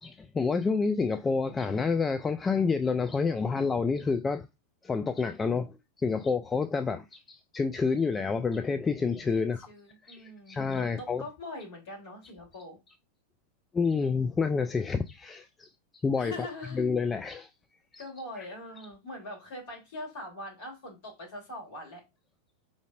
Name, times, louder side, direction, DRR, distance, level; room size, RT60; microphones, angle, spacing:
voice 1, 0.0-4.5 4.8-9.7 10.0-11.2 13.7-15.7 16.0-16.5 16.7-17.5 17.9-18.0 18.4-18.5, left 4 dB, 15° left, 0.3 m, -28 dB
voice 2, 9.3-12.8 16.2-16.8 18.0-22.0, left 1 dB, 50° left, 2.8 m, -42 dB
5.0 x 3.7 x 2.4 m
figure-of-eight pair, 90°, 0 cm